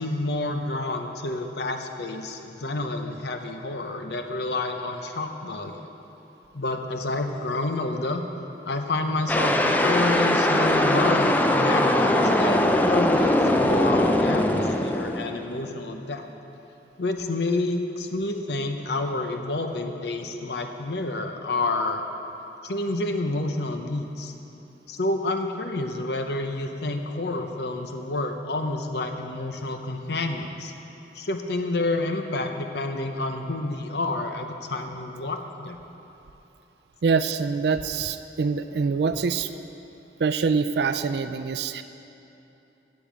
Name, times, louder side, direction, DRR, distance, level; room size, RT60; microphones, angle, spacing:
voice 1, 0.0-5.9 6.5-8.2 8.7-12.6 12.9-16.2 17.0-22.0 22.6-24.3 24.9-30.7 31.1-35.8, left 2 dB, 70° left, 5 dB, 0.8 m, -29 dB
sound 1, 9.3-15.6, left 1 dB, 10° left, 0.4 m, -21 dB
voice 2, 37.0-39.5 40.2-41.8, right 5 dB, 65° right, 10 dB, 0.4 m, -25 dB
8.4 x 8.3 x 7.4 m, 3.0 s
head